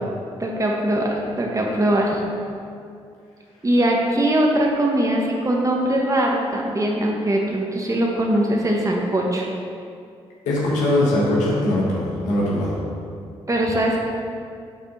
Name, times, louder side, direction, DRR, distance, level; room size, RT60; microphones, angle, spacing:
voice 1, 0.4-2.2 3.6-9.5 13.5-14.0, right 1 dB, 25° right, -1 dB, 1.2 m, -21 dB
voice 2, 10.4-12.8, left 1 dB, 85° left, -5 dB, 1.2 m, -21 dB
6.2 x 4.1 x 5.4 m, 2.4 s
supercardioid pair, 45°, 12 cm